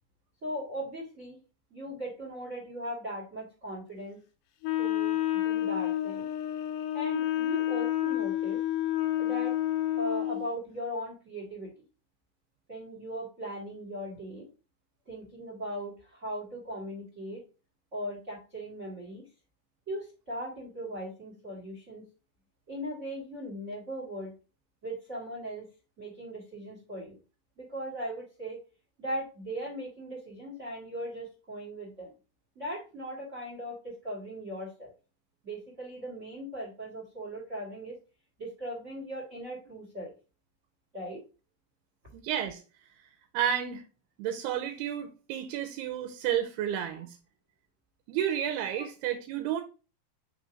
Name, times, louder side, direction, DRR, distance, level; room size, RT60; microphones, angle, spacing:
voice 1, 0.4-1.4 1.7-4.2 4.8-6.3 6.9-8.6 9.2-9.5 10.0-11.7 12.7-14.5 15.1-17.4 17.9-19.2 19.9-22.0 22.7-24.3 24.8-25.6 26.0-27.2 27.6-28.6 29.0-32.1 32.5-34.9 35.4-38.0 38.4-40.1 40.9-41.2 48.8-48.9, equal, 45° right, 0.9 m, -38 dB
Wind instrument woodwind instrument, 4.6-10.5, left 13 dB, 80° left, 2.5 m, -29 dB
voice 2, 42.1-42.6 43.3-43.8 44.2-47.2 48.1-49.6, right 10 dB, 85° right, 2.6 m, -31 dB
5.5 x 4.0 x 4.8 m
omnidirectional pair, 4.8 m